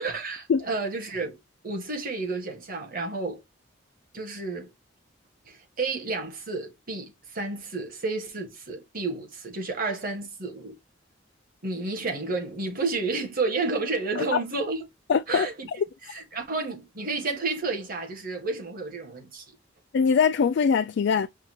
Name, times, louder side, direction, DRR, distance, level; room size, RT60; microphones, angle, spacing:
voice 1, 0.0-1.4 1.6-3.4 4.1-4.7 5.4-10.8 11.6-14.8 15.3-15.7 16.1-19.4, right 3 dB, 50° right, 1.6 m, -31 dB
voice 2, 15.1-15.5 15.8-15.9 19.9-21.3, left 6 dB, 65° left, 0.3 m, -22 dB
5.6 x 2.4 x 2.9 m
head